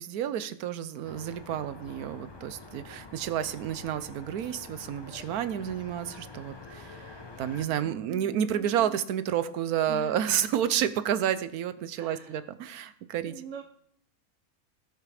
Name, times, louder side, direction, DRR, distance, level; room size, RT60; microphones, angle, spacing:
voice 1, 0.0-13.3, right 10 dB, 90° right, 13 dB, 1.2 m, -30 dB
sound 1, 1.0-7.7, left 3 dB, 20° left, 0.7 m, -47 dB
voice 2, 7.8-9.0 9.9-10.2 12.0-12.4 12.8-12.9 13.2-13.6, right 5 dB, 55° right, 3 dB, 1.2 m, -43 dB
17.0 x 5.9 x 4.9 m, 0.66 s
omnidirectional pair, 1.6 m